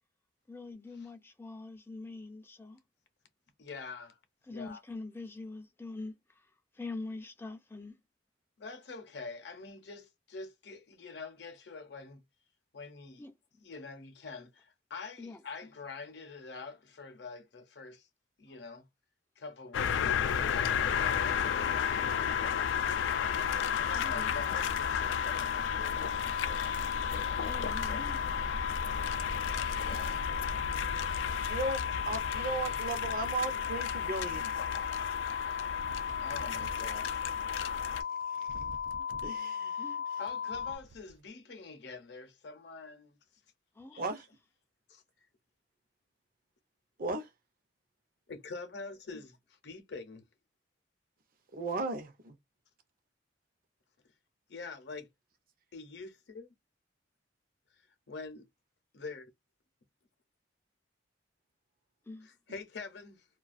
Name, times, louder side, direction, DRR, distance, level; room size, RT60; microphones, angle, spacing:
voice 1, 0.5-2.8 4.5-6.5 6.7-8.0 13.2-13.3 15.2-15.4 23.9-24.3 27.4-28.2 39.8-40.0 43.8-44.0 62.1-62.3, left 3 dB, 10° left, 0.3 m, -44 dB
voice 2, 3.6-4.2 4.5-4.8 8.6-12.2 12.7-13.2 13.6-18.1 18.4-18.9 19.4-23.3 23.8-26.7 27.9-28.1 29.8-30.3 36.2-37.3 40.2-43.2 43.9-44.0 44.9-45.0 48.3-50.3 54.5-55.1 55.7-56.5 58.1-58.5 58.9-59.3 62.2-63.3, left 4 dB, 65° left, 0.7 m, -45 dB
sound 1, 19.7-38.0, left 7 dB, 85° left, 0.3 m, -34 dB
sound 2, 20.9-40.8, left 7 dB, 70° right, 1.0 m, -36 dB
voice 3, 31.5-31.8 32.1-34.5 38.4-38.5 39.2-39.8 44.0-44.3 47.0-47.3 51.5-52.4, right 3 dB, 50° right, 0.6 m, -35 dB
sound 3, 35.8-36.9 37.9-38.0 38.2-39.4 40.3-41.1, right 4 dB, 90° right, 0.3 m, -49 dB
2.3 x 2.3 x 2.4 m
head